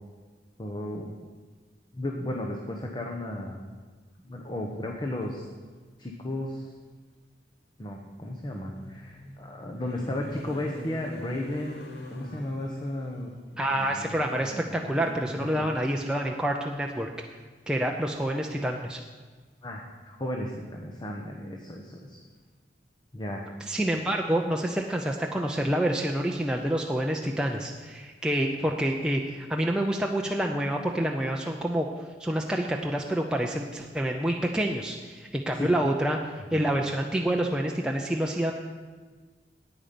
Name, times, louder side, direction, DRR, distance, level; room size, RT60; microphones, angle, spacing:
voice 1, 0.6-1.1 1.9-3.6 4.2-5.5 6.0-6.7 7.8-13.3 15.5-15.7 19.6-22.2 23.1-23.5 35.5-35.7 36.3-36.6, left 1 dB, 25° left, 0 dB, 1.0 m, -34 dB
sound 1, 6.2-6.3 8.5-16.2 17.3-17.5 17.8-18.0, left 1 dB, 65° left, 1.7 m, -44 dB
voice 2, 13.6-17.1 17.7-19.0 23.7-31.9 32.2-38.5, right 1 dB, 5° right, 0 dB, 0.5 m, -28 dB
9.2 x 9.0 x 6.8 m, 1.5 s
head